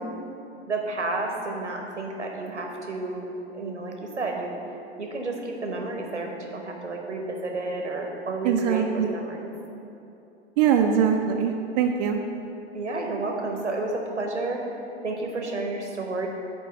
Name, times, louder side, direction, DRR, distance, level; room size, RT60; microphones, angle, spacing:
voice 1, 0.7-3.3 3.5-4.5 5.0-9.5 12.7-14.6 15.0-16.3, right 2 dB, 90° right, 1 dB, 1.0 m, -31 dB
voice 2, 8.4-9.1 10.6-12.2, right 8 dB, 40° right, 2 dB, 0.5 m, -22 dB
9.1 x 3.1 x 6.2 m, 2.7 s
figure-of-eight pair, 90°, 34 cm